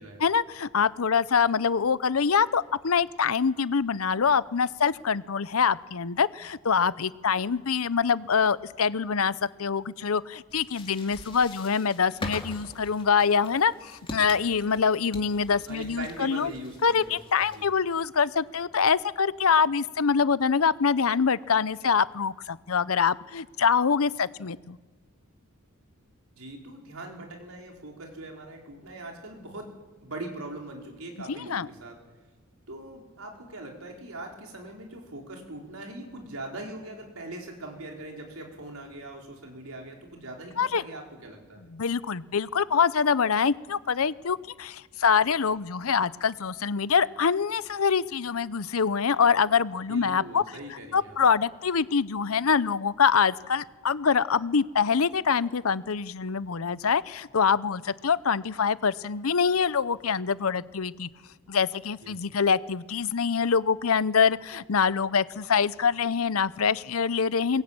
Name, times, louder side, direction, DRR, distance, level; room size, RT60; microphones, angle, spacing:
voice 1, 0.2-16.5 16.8-24.8 31.3-31.7 40.6-40.8 41.7-50.4 50.9-61.1 61.5-67.6, left 6 dB, 85° left, 17 dB, 0.7 m, -25 dB
sound 1, 10.5-17.8, left 2 dB, 25° left, 2.4 m, -43 dB
voice 2, 15.7-17.2 17.5-17.7 26.4-29.7 30.0-32.0 32.7-41.7 49.9-51.2 62.0-62.2, right 1 dB, 85° right, 1 dB, 4.6 m, -41 dB
22.5 x 20.0 x 8.9 m, 1.3 s
head